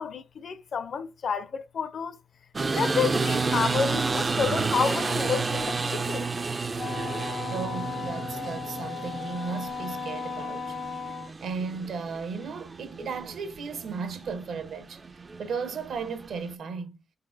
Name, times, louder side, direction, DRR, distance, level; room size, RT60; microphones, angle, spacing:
voice 1, 0.0-2.2 2.7-6.3, left 6 dB, 55° left, 0.5 m, -30 dB
sound 1, 2.5-16.5, right 4 dB, 30° right, 0.3 m, -31 dB
Wind instrument woodwind instrument, 6.8-11.3, left 5 dB, 80° left, 1.0 m, -36 dB
voice 2, 7.5-10.8 11.0-15.0 15.4-17.0, right 5 dB, 70° right, 1.0 m, -35 dB
4.9 x 3.9 x 2.6 m
wide cardioid pair, 140°, 0 cm